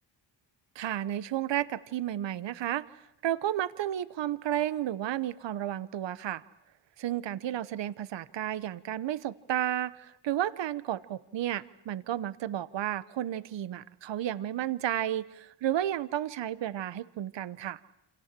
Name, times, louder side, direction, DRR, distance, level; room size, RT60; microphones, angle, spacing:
voice 1, 0.7-2.9 3.2-6.4 7.0-17.8, right 12 dB, 70° right, 16 dB, 1.0 m, -32 dB
28.5 x 27.0 x 7.5 m, 0.81 s
wide cardioid pair, 135°, 45 cm